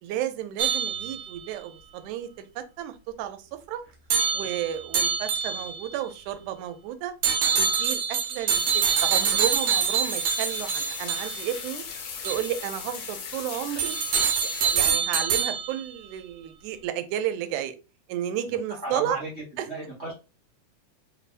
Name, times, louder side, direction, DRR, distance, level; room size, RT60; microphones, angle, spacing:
voice 1, 0.0-3.4 3.7-3.8 4.3-7.1 7.5-11.8 12.2-14.0 14.4-17.8 18.1-19.2 19.6-19.7, right 11 dB, 85° right, 10 dB, 2.1 m, -32 dB
sound 1, 0.6-1.5 4.1-5.9 7.2-11.6 12.3-12.5 13.8-15.9, right 7 dB, 70° right, 1.9 m, -25 dB
sound 2, 8.5-14.9, left 6 dB, 65° left, 1.4 m, -37 dB
voice 2, 18.5-20.1, right 1 dB, 40° right, -5 dB, 0.9 m, -36 dB
4.5 x 3.3 x 2.4 m, 0.30 s
omnidirectional pair, 3.4 m